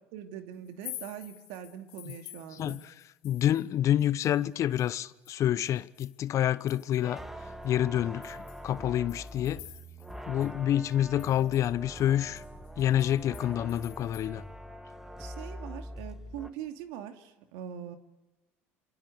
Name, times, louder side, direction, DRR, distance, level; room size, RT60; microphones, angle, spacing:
voice 1, 0.1-2.8 15.2-18.0, right 10 dB, 70° right, 2.7 m, -42 dB
sound 1, 0.6-3.7 4.0-7.2 7.6-7.7 8.2-10.2 10.4-10.5 10.8-14.3, left 16 dB, 75° left, 3.6 m, -49 dB
voice 2, 2.5-2.9 3.2-7.2 7.6-9.6 10.3-12.4 12.8-14.4, left 11 dB, 50° left, 0.9 m, -28 dB
sound 2, 7.0-16.5, equal, 5° right, 2.1 m, -43 dB
27.0 x 27.0 x 8.0 m
hypercardioid pair, 75°, 7 cm